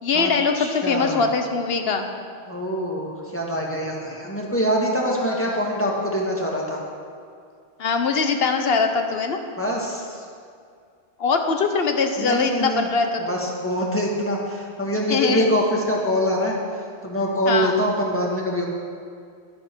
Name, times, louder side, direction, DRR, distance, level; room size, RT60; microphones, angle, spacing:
voice 1, 0.0-2.1 5.3-5.6 7.8-9.4 11.2-13.4 15.1-15.5 17.5-17.8, left 4 dB, 70° left, 6 dB, 1.2 m, -22 dB
voice 2, 0.6-1.2 2.5-6.8 9.6-10.2 12.2-12.9 13.2-16.5 17.0-18.7, equal, 10° left, -2 dB, 1.7 m, -24 dB
11.5 x 10.5 x 4.5 m, 2.2 s
omnidirectional pair, 1.1 m